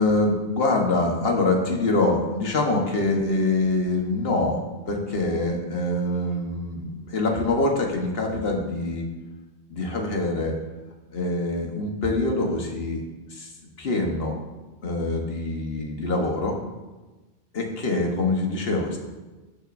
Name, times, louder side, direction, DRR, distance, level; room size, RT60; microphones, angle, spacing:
voice 1, 0.0-9.0 9.7-10.6 11.1-13.0 13.3-13.5 13.8-14.4 14.8-16.6 17.5-19.0, left 2 dB, 65° left, 1 dB, 1.4 m, -24 dB
13.0 x 6.3 x 2.6 m, 1.2 s
omnidirectional pair, 1.1 m